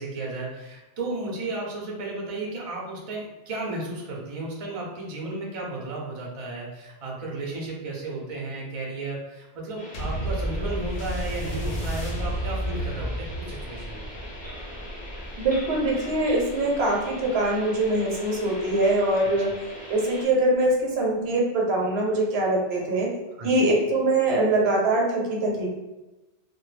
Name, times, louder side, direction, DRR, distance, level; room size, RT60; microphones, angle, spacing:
voice 1, 0.0-14.1 23.4-23.7, right 2 dB, 45° right, -2 dB, 0.4 m, -34 dB
sound 1, 9.8-20.2, left 1 dB, 10° left, 0.5 m, -41 dB
sound 2, 9.9-18.7 19.5-19.6, equal, 55° left, 0.7 m, -32 dB
voice 2, 15.4-19.5 19.9-23.1 23.4-25.7, right 2 dB, 70° right, -2 dB, 0.8 m, -23 dB
2.2 x 2.1 x 3.1 m, 1.1 s
omnidirectional pair, 1.1 m